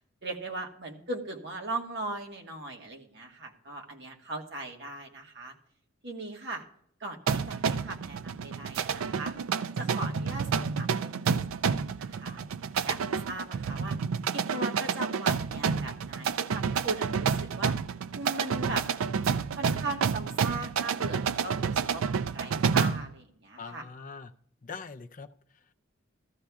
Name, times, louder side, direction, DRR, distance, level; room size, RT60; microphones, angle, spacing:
voice 1, 0.2-5.5 6.0-6.7 7.0-9.3 9.8-12.4 12.8-14.0 14.3-17.7 18.1-18.8 19.5-23.8, right 2 dB, 55° right, 2 dB, 1.5 m, -39 dB
sound 1, 7.3-23.1, right 6 dB, 80° right, 0.4 m, -29 dB
voice 2, 23.6-24.3 24.6-25.7, left 5 dB, 40° left, 7 dB, 0.5 m, -43 dB
14.0 x 14.0 x 2.3 m, 0.67 s
head